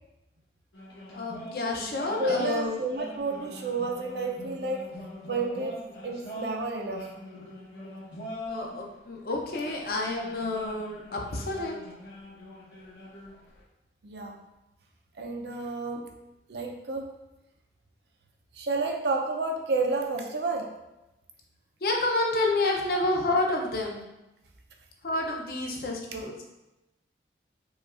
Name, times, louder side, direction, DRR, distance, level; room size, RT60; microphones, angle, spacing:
sound 1, 0.7-8.8 9.5-13.6, equal, 80° left, 1.1 m, -43 dB
voice 1, 1.1-2.7 8.5-11.7 21.8-24.0 25.0-26.3, left 2 dB, 55° left, 0 dB, 0.6 m, -29 dB
voice 2, 2.2-4.9 5.3-7.1 14.0-14.4 15.1-16.1 16.5-17.1 18.5-20.7 22.9-23.1 25.9-26.3, right 3 dB, 70° right, 2 dB, 0.5 m, -31 dB
4.9 x 2.3 x 2.5 m, 0.97 s
head